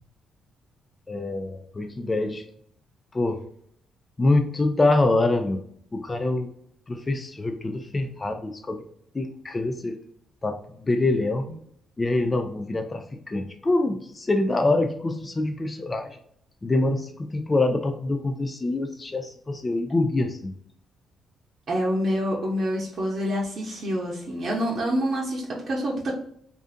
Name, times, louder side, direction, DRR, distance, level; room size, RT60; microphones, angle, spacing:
voice 1, 1.1-2.4 3.1-3.4 4.2-5.6 5.9-6.5 6.9-8.8 9.1-10.0 10.4-11.5 12.0-16.2 16.6-20.6, left 2 dB, 25° left, 5 dB, 0.3 m, -25 dB
voice 2, 21.7-26.1, equal, 55° right, -3 dB, 0.7 m, -27 dB
2.5 x 2.5 x 2.4 m, 0.66 s
cardioid pair, 90°, 0 cm